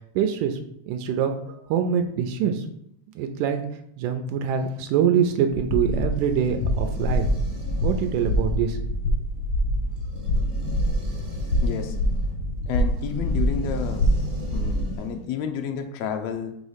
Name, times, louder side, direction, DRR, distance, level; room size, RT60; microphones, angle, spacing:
voice 1, 0.2-0.6 0.9-2.7 3.2-3.7 4.0-7.3 7.8-8.8, right 8 dB, 85° right, 5 dB, 2.1 m, -24 dB
sound 1, 5.5-15.0, equal, 70° left, 1.2 m, -25 dB
sound 2, 5.6-15.3, left 1 dB, 65° right, 0.7 m, -37 dB
voice 2, 11.6-12.0 12.7-14.0 14.5-16.6, left 7 dB, 90° left, 5 dB, 1.4 m, -30 dB
5.5 x 3.1 x 5.5 m, 0.75 s
omnidirectional pair, 3.5 m